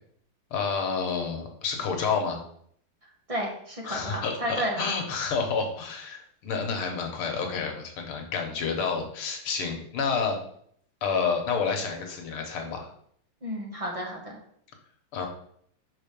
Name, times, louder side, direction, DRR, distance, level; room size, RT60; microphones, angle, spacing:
voice 1, 0.5-2.4 3.8-10.4 11.0-12.9 15.1-15.3, left 5 dB, 85° left, 3 dB, 2.0 m, -29 dB
voice 2, 3.3-4.9 13.4-14.4, equal, 20° right, -1 dB, 1.1 m, -32 dB
5.6 x 4.2 x 5.2 m, 0.65 s
omnidirectional pair, 2.3 m